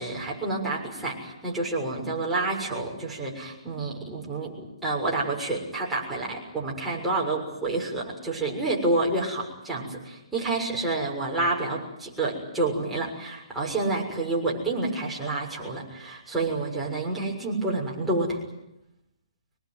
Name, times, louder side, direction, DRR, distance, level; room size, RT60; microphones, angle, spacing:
voice 1, 0.0-18.4, right 2 dB, 5° right, -4 dB, 6.8 m, -29 dB
25.5 x 22.0 x 9.4 m, 0.87 s
hypercardioid pair, 155°, 3 cm